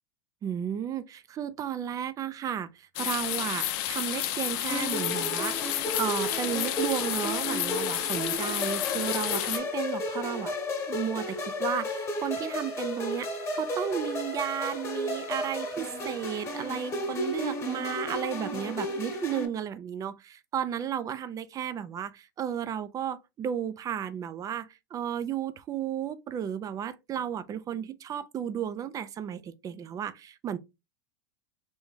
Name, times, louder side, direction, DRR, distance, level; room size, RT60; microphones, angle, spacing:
voice 1, 0.4-5.7 6.0-10.5 10.9-30.6, right 9 dB, 25° right, 0.4 m, -33 dB
sound 1, 3.0-9.6, left 13 dB, 55° left, 0.5 m, -31 dB
sound 2, 4.7-19.5, left 1 dB, 20° left, 1.1 m, -33 dB
3.4 x 2.6 x 3.3 m
hypercardioid pair, 110°, 13 cm